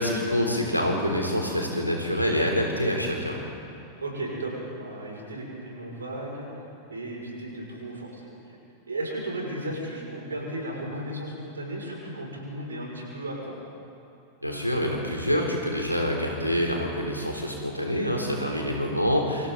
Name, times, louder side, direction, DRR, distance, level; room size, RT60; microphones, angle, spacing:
voice 1, 0.0-3.4 14.4-19.5, equal, 90° left, 0 dB, 3.8 m, -26 dB
voice 2, 4.0-6.5 6.9-8.2 8.5-8.6 8.9-13.6, right 1 dB, 75° right, -2 dB, 6.6 m, -35 dB
28.0 x 26.5 x 4.2 m, 2.7 s
figure-of-eight pair, 90°, 0 cm